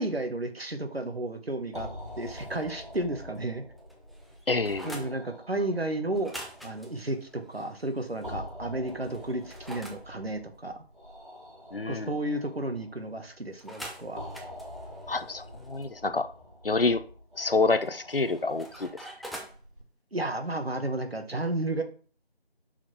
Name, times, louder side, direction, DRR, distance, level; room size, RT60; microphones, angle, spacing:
voice 1, 0.0-1.9 2.2-3.6 4.8-6.3 6.6-10.8 11.9-14.2 20.1-21.8, right 1 dB, 70° right, 1.2 m, -32 dB
sound 1, 1.7-19.8, left 1 dB, 55° right, 1.8 m, -46 dB
sound 2, 2.1-3.0 3.3-3.4 3.8-5.1 6.1-8.3 8.9-10.0 13.6-15.8 17.8-19.6, right 1 dB, ahead, 0.5 m, -45 dB
voice 2, 4.5-5.0 11.7-12.1 15.1-16.3 16.6-17.0 17.4-18.9, left 3 dB, 65° left, 0.5 m, -27 dB
5.9 x 4.4 x 4.3 m
figure-of-eight pair, 180°, 31 cm